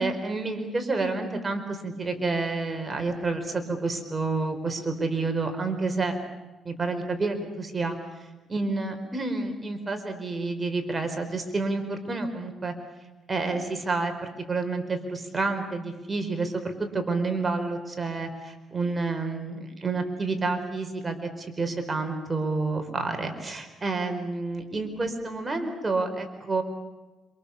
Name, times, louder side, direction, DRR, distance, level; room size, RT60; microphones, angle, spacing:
voice 1, 0.0-6.2 6.6-8.0 8.5-12.7 13.3-14.1 14.5-26.6, right 3 dB, 25° right, 6 dB, 4.4 m, -29 dB
27.0 x 27.0 x 7.1 m, 1.2 s
cardioid pair, 90°, 0 cm